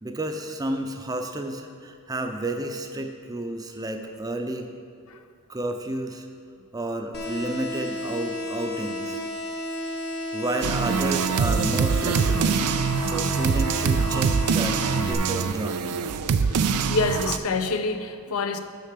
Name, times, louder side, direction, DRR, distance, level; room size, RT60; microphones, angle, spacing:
voice 1, 0.0-4.7 5.5-6.3 6.7-9.2 10.3-12.6 13.1-16.0, right 1 dB, 15° right, 0.5 m, -31 dB
sound 1, 7.1-15.1, left 1 dB, 50° left, 0.9 m, -32 dB
sound 2, 10.6-17.4, right 6 dB, 85° right, 0.4 m, -24 dB
voice 2, 16.4-18.6, left 3 dB, 70° left, 0.6 m, -27 dB
6.6 x 5.5 x 6.6 m
head